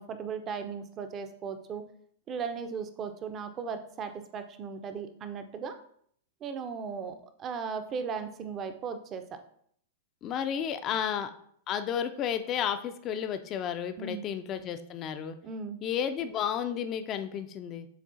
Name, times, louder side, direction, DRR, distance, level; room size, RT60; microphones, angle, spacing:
voice 1, 0.0-1.8 2.3-5.7 6.4-9.4 14.0-14.2 15.4-15.8, right 6 dB, 30° right, 9 dB, 0.5 m, -37 dB
voice 2, 10.2-11.3 11.7-15.4 15.8-17.9, left 8 dB, 35° left, 9 dB, 0.3 m, -32 dB
7.2 x 2.4 x 2.6 m, 0.64 s
hypercardioid pair, 115°, 0 cm